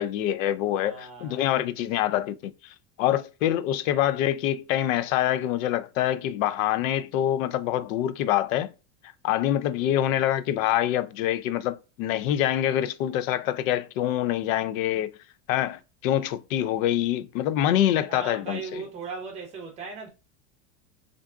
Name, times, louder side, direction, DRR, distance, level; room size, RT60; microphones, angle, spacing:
voice 1, 0.0-8.7 9.2-15.1 15.5-18.8, left 12 dB, 90° left, 0.5 m, -25 dB
voice 2, 0.7-1.6 18.1-20.1, right 5 dB, 15° right, 0.6 m, -38 dB
3.5 x 2.6 x 2.3 m
supercardioid pair, 180°, 39 cm